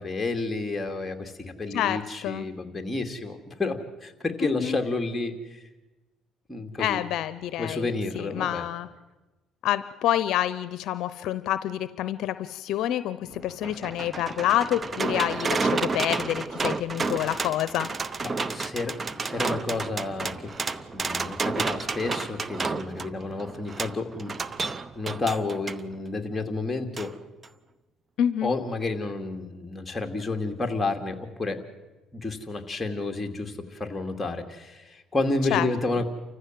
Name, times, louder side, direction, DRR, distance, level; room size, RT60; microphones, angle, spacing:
voice 1, 0.0-5.6 6.5-7.0 7.6-8.6 18.2-24.3 25.0-27.1 28.4-31.6 32.1-36.0, left 3 dB, 15° left, 5 dB, 2.6 m, -30 dB
voice 2, 1.7-2.5 4.4-4.8 6.8-8.9 9.6-17.9 28.2-28.5 35.5-35.7, left 12 dB, 70° left, 14 dB, 0.7 m, -28 dB
sound 1, 13.3-25.8 27.0-27.1 27.4-27.5, right 4 dB, 30° right, 0.8 m, -31 dB
29.0 x 14.5 x 7.6 m, 1.1 s
supercardioid pair, 90°, 0 cm